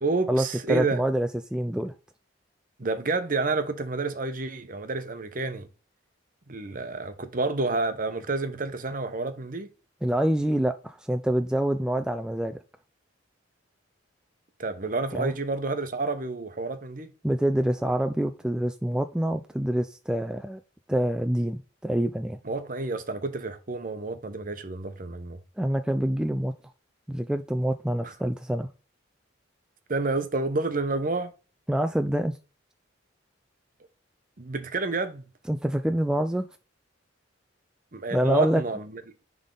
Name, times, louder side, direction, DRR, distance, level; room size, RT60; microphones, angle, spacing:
voice 1, 0.0-1.0 2.8-5.7 6.5-9.7 14.6-17.1 22.4-25.4 28.0-28.1 29.9-31.3 34.4-35.2 37.9-39.0, right 3 dB, 45° right, 0.9 m, -29 dB
voice 2, 0.7-1.9 10.0-12.6 15.1-15.3 17.2-20.6 20.9-22.4 25.6-26.5 27.1-28.7 31.7-32.3 35.5-36.5 38.1-38.6, right 1 dB, 5° right, 0.3 m, -26 dB
10.5 x 3.5 x 3.8 m
head